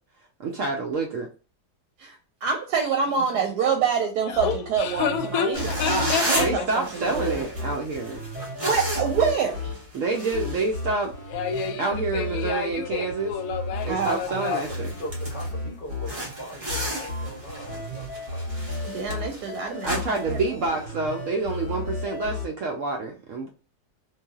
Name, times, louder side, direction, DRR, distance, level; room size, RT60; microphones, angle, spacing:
voice 1, 0.4-1.3 6.4-8.2 9.9-11.1 11.8-13.3 13.8-14.9 19.8-23.5, right 3 dB, 65° right, 2 dB, 0.8 m, -28 dB
voice 2, 2.4-7.4 8.6-9.7 13.9-14.4 18.9-20.6, right 6 dB, 85° right, 4 dB, 1.2 m, -27 dB
voice 3, 4.3-6.6 11.3-14.6, left 7 dB, 70° left, 7 dB, 1.0 m, -29 dB
sound 1, 4.3-22.5, left 2 dB, 20° left, 1.4 m, -34 dB
sound 2, 5.5-11.2 11.5-11.7 12.2-12.5 12.8-12.9 13.4-13.5 13.8-15.6 16.0-21.1, right 1 dB, 25° right, 1.0 m, -33 dB
voice 4, 14.5-19.2, equal, 40° left, -1 dB, 0.9 m, -40 dB
3.2 x 2.6 x 2.3 m, 0.35 s
omnidirectional pair, 1.7 m